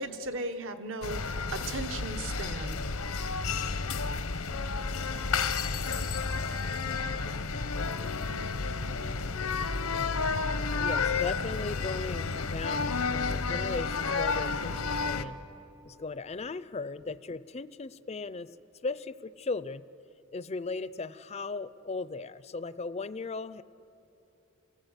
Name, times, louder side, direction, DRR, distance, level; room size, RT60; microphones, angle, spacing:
voice 1, 0.0-2.8, right 2 dB, 60° right, 8 dB, 1.1 m, -37 dB
sound 1, 1.0-15.2, left 4 dB, 85° left, 1.0 m, -31 dB
voice 2, 10.8-15.4 15.8-18.5 18.8-19.8 20.3-23.6, left 3 dB, 30° left, 15 dB, 0.5 m, -37 dB
30.0 x 18.5 x 8.1 m, 3.0 s
head